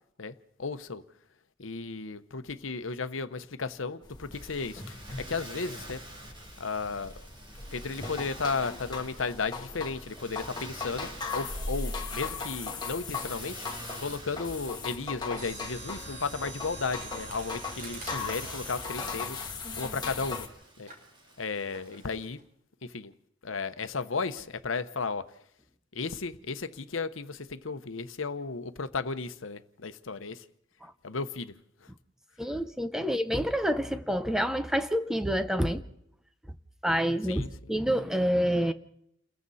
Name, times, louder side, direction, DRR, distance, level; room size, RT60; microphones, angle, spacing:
voice 1, 0.2-1.0 1.6-6.0 6.6-7.1 7.7-13.7 14.0-20.5 20.8-20.9 21.4-22.4 22.8-23.1 23.4-25.3 25.9-30.4 31.0-31.5 33.0-33.1 37.3-37.7, left 4 dB, 85° left, 1.0 m, -34 dB
sound 1, 4.0-20.5, left 4 dB, 20° left, 2.2 m, -39 dB
Motor vehicle (road), 4.3-22.3, right 2 dB, 25° right, 2.9 m, -49 dB
Mechanisms, 15.3-20.3 20.9-21.1 21.7-22.0 22.4-22.5, right 2 dB, 40° right, 5.4 m, -45 dB
voice 2, 32.4-35.8 36.8-37.4 37.7-38.7, equal, 5° right, 0.9 m, -27 dB
29.5 x 21.5 x 4.2 m
head